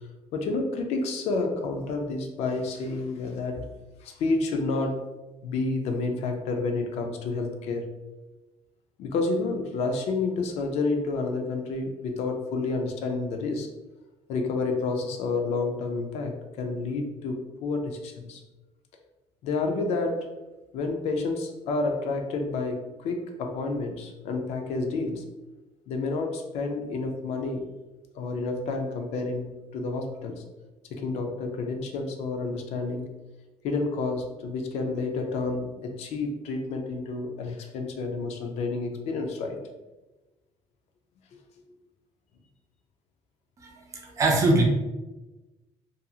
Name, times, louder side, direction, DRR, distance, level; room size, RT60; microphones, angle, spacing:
voice 1, 0.3-3.7 4.0-5.0 5.4-7.9 9.0-13.7 14.3-18.4 19.4-20.3 20.7-25.2 25.9-27.7 28.1-30.4 30.9-33.1 33.6-39.6 41.3-41.4, left 3 dB, 70° left, 4 dB, 0.4 m, -29 dB
voice 2, 43.6-44.6, right 2 dB, 30° right, 1 dB, 0.5 m, -23 dB
2.7 x 2.5 x 2.3 m, 1.1 s
cardioid pair, 160°, 11 cm